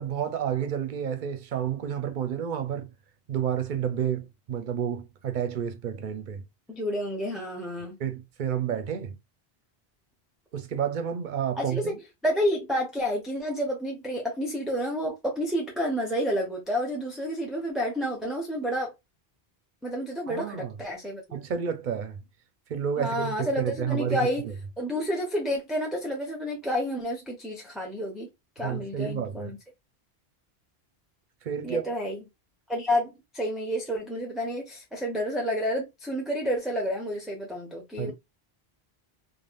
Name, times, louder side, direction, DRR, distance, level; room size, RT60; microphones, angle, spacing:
voice 1, 0.0-2.9 3.3-6.4 8.0-9.1 10.5-12.0 20.3-20.7 21.3-22.2 22.7-24.2 28.6-29.5 31.4-31.8 38.0-38.1, right 8 dB, 55° right, 0.7 m, -30 dB
voice 2, 6.7-8.0 11.5-11.9 12.2-18.9 19.8-21.2 23.0-24.4 24.8-28.3 28.6-29.6 31.6-32.2 32.7-38.1, equal, ahead, 0.5 m, -30 dB
3.3 x 2.4 x 2.4 m
omnidirectional pair, 1.1 m